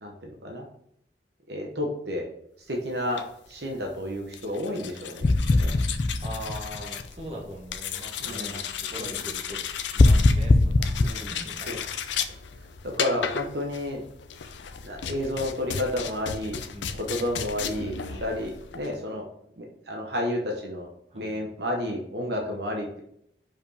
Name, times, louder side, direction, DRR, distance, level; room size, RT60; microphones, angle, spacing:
voice 1, 0.0-0.6 1.5-2.2 2.7-3.2 3.5-5.3 5.6-5.7 8.2-8.6 9.0-9.1 11.0-11.3 11.7-11.8 13.0-14.1 14.8-16.6 17.1-17.9 18.2-19.2 19.6-20.9 21.1-23.0, left 1 dB, 65° right, 1 dB, 1.0 m, -31 dB
sound 1, 3.0-19.0, left 7 dB, 85° left, 0.6 m, -35 dB
sound 2, 5.2-7.1 10.0-11.1, left 2 dB, 35° left, 0.3 m, -20 dB
voice 2, 6.2-9.6 9.9-11.9 16.7-17.0 18.0-18.4 21.1-21.4, equal, 35° right, -2 dB, 1.5 m, -41 dB
5.2 x 5.1 x 4.9 m, 0.73 s
head